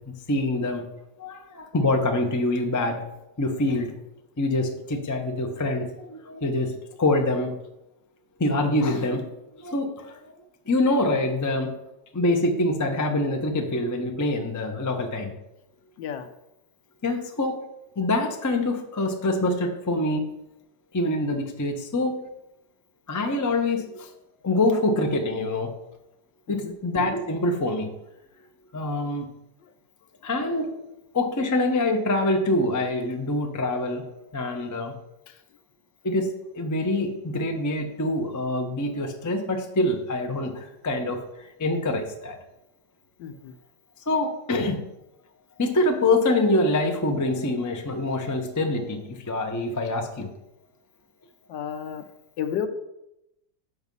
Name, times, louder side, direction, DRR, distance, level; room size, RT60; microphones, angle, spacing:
voice 1, 0.1-0.9 1.2-3.1 3.4-3.9 4.4-7.6 8.4-9.3 9.6-10.3 10.7-11.8 12.1-15.3 17.0-17.6 18.0-20.3 20.9-22.2 23.1-24.1 24.4-25.7 26.5-27.9 28.7-29.3 30.2-30.8 31.1-34.1 34.3-34.9 36.0-42.4 44.1-44.8 45.6-50.3, left 2 dB, 30° left, 4 dB, 0.3 m, -25 dB
voice 2, 16.0-16.3 26.5-26.7 29.6-29.7 35.3-35.4 43.2-43.5 51.5-52.0 52.4-52.7, left 8 dB, 75° left, 9 dB, 1.3 m, -32 dB
7.0 x 6.1 x 5.4 m, 0.88 s
omnidirectional pair, 2.0 m